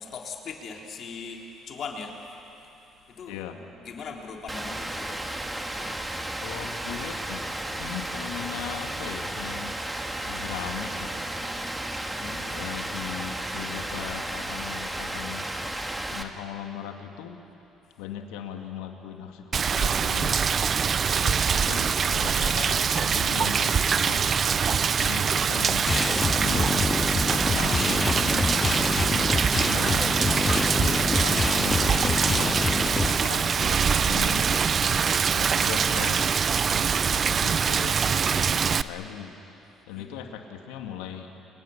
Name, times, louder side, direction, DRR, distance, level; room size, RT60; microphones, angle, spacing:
voice 1, 0.0-6.3 12.0-12.4 30.3-31.1 39.9-40.2, left 5 dB, 55° left, 1 dB, 3.9 m, -40 dB
voice 2, 3.3-3.6 6.1-9.8 10.3-11.4 12.1-17.4 18.0-20.8 21.2-24.4 25.0-30.0 30.8-34.6 35.3-36.4 36.7-41.3, left 9 dB, 80° left, 4 dB, 2.2 m, -39 dB
Rain, 4.5-16.2, right 1 dB, 15° right, 2.3 m, -33 dB
Rain 2, 19.5-38.8, right 6 dB, 45° right, 0.7 m, -24 dB
sound 1, 25.9-33.2, left 4 dB, 30° left, 0.5 m, -27 dB
29.5 x 24.0 x 7.3 m, 2.9 s
hypercardioid pair, 55°, 0 cm